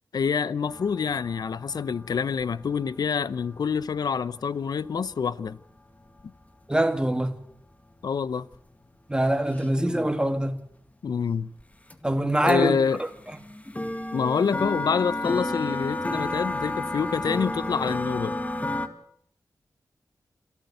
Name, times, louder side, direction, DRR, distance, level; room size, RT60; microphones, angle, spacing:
voice 1, 0.1-5.6 8.0-8.5 11.0-11.5 12.4-13.0 14.1-18.4, left 6 dB, 80° left, 0.8 m, -26 dB
sound 1, 0.7-6.3 7.9-8.0 8.5-8.6 8.8-10.3 11.6-11.7 11.9-12.0 12.5-18.9, left 1 dB, 20° left, 2.2 m, -32 dB
voice 2, 6.7-7.3 9.1-10.6 12.0-13.1, right 1 dB, 15° right, 2.8 m, -24 dB
28.0 x 13.5 x 8.1 m
cardioid pair, 60°, 7 cm